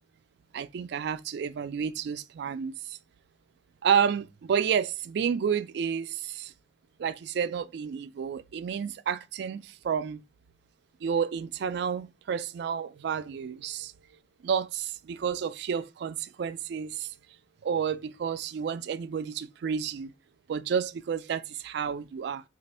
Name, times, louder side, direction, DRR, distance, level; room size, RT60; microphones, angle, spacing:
voice 1, 0.5-3.0 3.8-6.5 7.0-10.2 11.0-13.9 14.4-17.1 17.6-20.1 20.5-22.4, right 7 dB, 65° right, 0.3 m, -30 dB
3.3 x 2.4 x 4.1 m
head